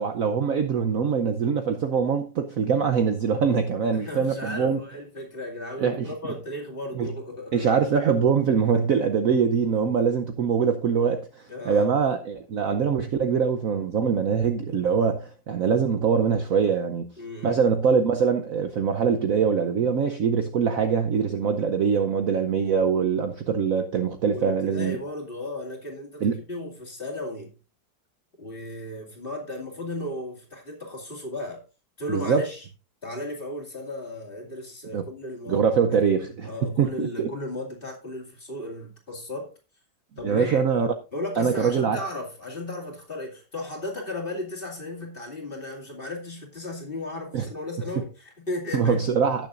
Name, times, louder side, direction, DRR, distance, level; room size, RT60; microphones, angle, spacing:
voice 1, 0.0-4.8 5.8-6.1 6.9-7.1 7.5-17.1 17.4-25.0 26.2-26.4 32.1-32.4 34.9-35.0 35.5-37.3 40.2-40.9 41.4-42.0 47.3-47.5 48.7-49.5, right 6 dB, 60° right, 1.0 m, -23 dB
voice 2, 3.9-7.8 11.5-12.0 17.2-17.6 24.3-27.5 28.4-31.6 32.0-32.6 33.0-35.6 36.2-39.5 40.2-40.6 41.1-49.1, left 2 dB, 30° left, 2.6 m, -35 dB
17.5 x 6.9 x 2.5 m
omnidirectional pair, 2.0 m